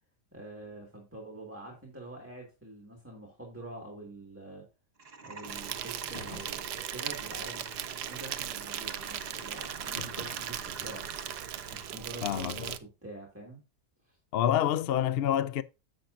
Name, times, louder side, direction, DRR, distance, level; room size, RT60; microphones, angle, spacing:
voice 1, 0.3-4.7 5.2-7.7 8.0-11.1 11.7-13.6 14.1-14.2, right 2 dB, 10° right, 2.0 m, -46 dB
sound 1, 5.0-12.0, right 4 dB, 35° right, 1.9 m, -45 dB
Insect, 5.4-12.8, right 11 dB, 75° right, 1.3 m, -38 dB
sound 2, 6.1-6.9 9.9-11.0, left 1 dB, 30° left, 4.2 m, -47 dB
voice 2, 12.2-12.6 14.3-15.6, left 10 dB, 90° left, 0.5 m, -27 dB
10.0 x 7.7 x 2.6 m
omnidirectional pair, 1.8 m